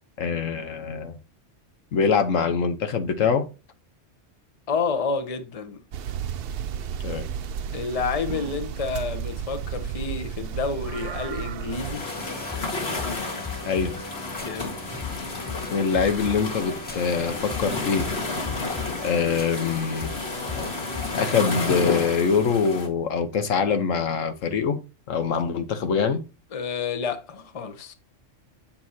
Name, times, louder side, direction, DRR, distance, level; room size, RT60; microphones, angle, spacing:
voice 1, 0.2-1.2 1.9-3.5 7.0-7.3 13.7-13.9 15.7-18.1 19.0-20.1 21.1-24.8 25.1-26.2, left 6 dB, 90° left, 1.4 m, -24 dB
voice 2, 4.7-5.8 7.7-12.1 14.4-14.7 26.5-27.9, left 5 dB, 30° left, 0.8 m, -29 dB
sound 1, 5.9-12.0, right 8 dB, 60° right, 0.7 m, -32 dB
sound 2, 11.7-22.9, left 3 dB, 55° left, 2.0 m, -31 dB
sound 3, 11.9-21.1, left 4 dB, 15° left, 0.3 m, -37 dB
7.8 x 7.3 x 2.8 m
omnidirectional pair, 1.3 m